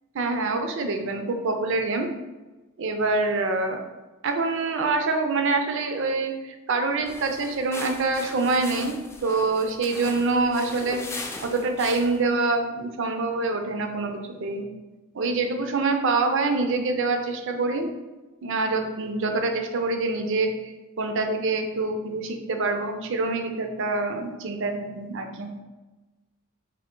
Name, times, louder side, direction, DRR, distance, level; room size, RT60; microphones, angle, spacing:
voice 1, 0.2-2.1 2.8-3.8 4.2-11.0 11.4-14.6 15.1-17.9 18.4-20.5 21.0-25.5, right 3 dB, 60° right, 5 dB, 0.5 m, -25 dB
sound 1, 7.0-12.3, left 2 dB, 10° left, 0.3 m, -39 dB
3.6 x 2.8 x 3.7 m, 1.2 s
head